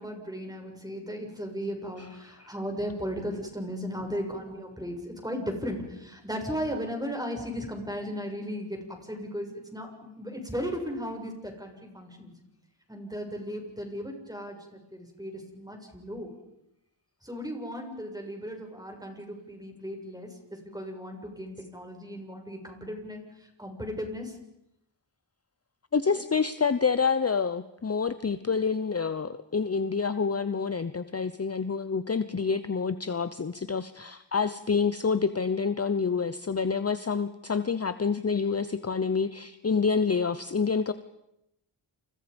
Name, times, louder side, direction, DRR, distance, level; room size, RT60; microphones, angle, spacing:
voice 1, 0.0-12.3 12.9-16.3 17.2-24.4, equal, 10° right, 2 dB, 6.7 m, -36 dB
voice 2, 25.9-40.9, left 5 dB, 30° left, 12 dB, 0.9 m, -27 dB
29.0 x 29.0 x 5.4 m, 0.85 s
wide cardioid pair, 85°, 47 cm